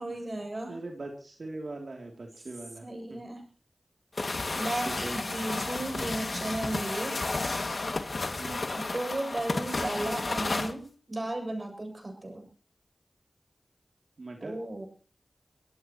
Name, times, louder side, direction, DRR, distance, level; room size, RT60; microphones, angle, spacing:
voice 1, 0.0-0.8 2.8-3.4 4.5-7.2 8.7-12.4 14.4-14.9, right 1 dB, 45° right, 5 dB, 7.5 m, -35 dB
voice 2, 0.7-3.2 4.8-5.1 8.4-8.7 14.2-14.5, right 2 dB, 75° right, 2 dB, 3.0 m, -41 dB
sound 1, 4.2-10.7, left 3 dB, 60° left, 2.2 m, -32 dB
24.0 x 17.0 x 3.1 m, 0.38 s
cardioid pair, 45°, 0 cm